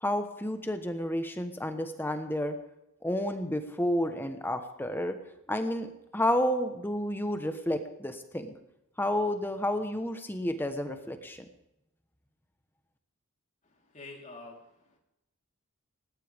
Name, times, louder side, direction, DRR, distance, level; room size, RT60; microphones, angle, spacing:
voice 1, 0.0-2.6 3.0-5.1 5.5-5.9 6.1-8.5 9.0-11.4, left 1 dB, 10° left, 7 dB, 1.2 m, -30 dB
voice 2, 13.6-15.0, left 2 dB, 35° left, -1 dB, 3.9 m, -48 dB
20.0 x 17.5 x 3.6 m, 0.87 s
head